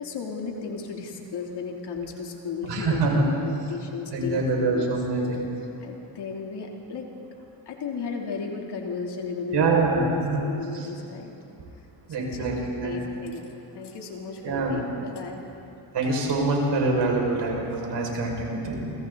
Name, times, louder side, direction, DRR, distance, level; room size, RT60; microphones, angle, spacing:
voice 1, 0.0-4.4 4.7-4.9 5.8-7.1 7.7-11.3 12.2-12.5 12.7-15.4, left 5 dB, 65° left, 1 dB, 3.3 m, -34 dB
voice 2, 2.7-3.2 4.1-5.4 9.5-10.4 10.7-10.9 12.1-13.1 14.4-14.8 15.9-18.9, right 3 dB, 65° right, -1 dB, 5.9 m, -25 dB
29.0 x 25.0 x 4.1 m, 2.6 s
cardioid pair, 85°, 44 cm